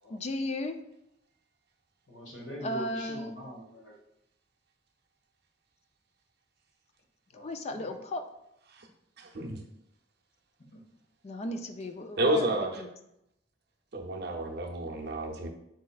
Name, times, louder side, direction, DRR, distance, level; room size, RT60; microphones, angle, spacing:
voice 1, 0.1-0.8 2.6-3.3 7.3-8.2 11.2-12.9, left 1 dB, 35° left, 7 dB, 0.4 m, -35 dB
voice 2, 2.1-3.9 7.3-7.9, equal, 80° left, -1 dB, 1.3 m, -43 dB
voice 3, 9.2-9.6 12.2-12.8 13.9-15.5, right 1 dB, 60° right, 1 dB, 0.7 m, -30 dB
4.8 x 4.2 x 2.3 m, 0.82 s
head